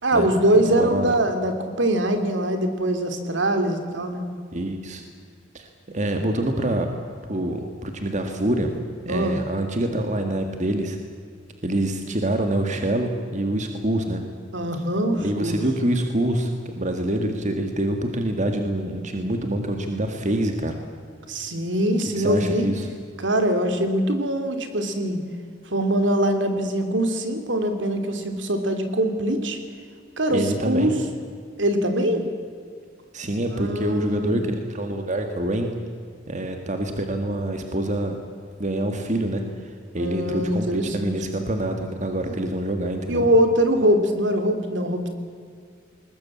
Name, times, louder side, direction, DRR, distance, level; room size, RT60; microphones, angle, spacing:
voice 1, 0.0-4.2 9.1-9.4 14.5-15.6 21.3-22.7 23.2-25.2 25.7-29.6 30.2-30.9 31.6-32.3 33.5-34.4 40.0-41.1 42.3-42.4 43.1-45.1, right 1 dB, 70° right, 7 dB, 2.9 m, -23 dB
voice 2, 0.7-1.1 4.5-5.0 5.5-6.9 7.3-8.7 9.1-11.0 11.6-14.2 15.2-20.8 22.1-22.9 30.3-30.9 33.1-35.7 36.3-38.2 38.6-43.3, right 1 dB, 40° right, 5 dB, 1.8 m, -26 dB
21.0 x 20.5 x 8.7 m, 2.2 s
head